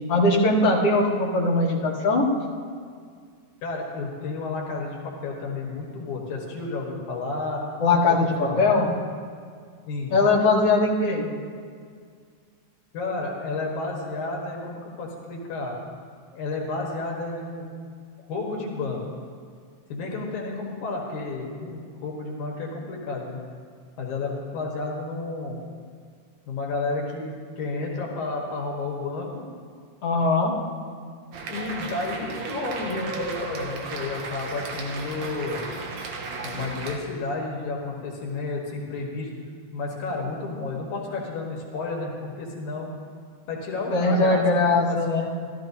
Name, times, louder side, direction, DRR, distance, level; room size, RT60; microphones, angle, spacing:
voice 1, 0.1-2.3 7.8-8.9 10.1-11.3 30.0-30.6 43.9-45.3, left 2 dB, 55° left, -6 dB, 2.6 m, -20 dB
voice 2, 3.6-7.6 7.9-8.9 9.9-10.1 12.9-15.8 16.3-17.7 18.3-19.0 19.9-23.4 24.0-25.7 26.5-29.5 31.5-35.7 36.4-39.3 39.7-42.9 43.4-45.0, left 3 dB, 85° left, -1 dB, 2.8 m, -31 dB
sound 1, 31.3-37.0, right 3 dB, 75° right, 2.3 m, -34 dB
15.5 x 13.0 x 2.7 m, 2.1 s
omnidirectional pair, 3.3 m